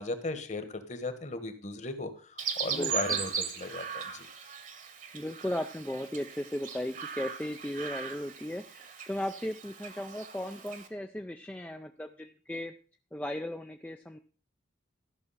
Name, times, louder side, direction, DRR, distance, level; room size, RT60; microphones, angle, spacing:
voice 1, 0.0-4.3, left 2 dB, 35° left, 10 dB, 1.2 m, -36 dB
Chirp tweet, 2.4-10.9, right 7 dB, 40° right, 1.2 m, -38 dB
voice 2, 2.7-3.2 5.1-12.7 13.1-14.2, left 1 dB, 5° left, 5 dB, 0.4 m, -36 dB
14.0 x 6.0 x 5.6 m, 0.39 s
head